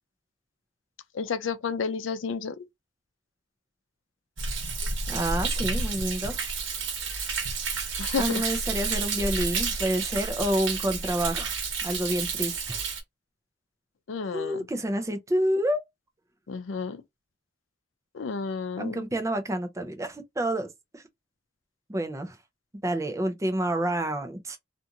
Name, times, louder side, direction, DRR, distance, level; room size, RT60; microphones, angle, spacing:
voice 1, 1.1-2.7 8.0-8.4 14.1-14.6 16.5-17.0 18.1-19.0, left 5 dB, 80° left, 0.5 m, -31 dB
Thunder, 4.4-13.0, right 4 dB, 90° right, 1.0 m, -30 dB
voice 2, 5.1-6.5 8.2-11.6 11.8-12.8 14.3-15.8 18.8-20.7 20.9-21.0 21.9-22.4 22.8-24.6, right 1 dB, 15° right, 0.5 m, -28 dB
2.5 x 2.5 x 2.7 m
head